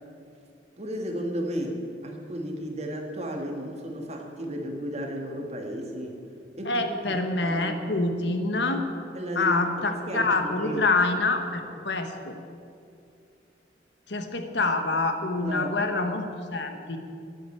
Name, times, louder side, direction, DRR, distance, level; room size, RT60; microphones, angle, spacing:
voice 1, 0.8-6.2 6.6-7.9 9.1-9.6 10.1-10.9 15.4-15.7, equal, 35° right, 1 dB, 1.8 m, -33 dB
voice 2, 6.6-8.8 9.3-12.3 14.1-16.3 16.5-17.0, left 3 dB, 75° left, 6 dB, 1.3 m, -26 dB
11.5 x 8.9 x 9.2 m, 2.5 s
head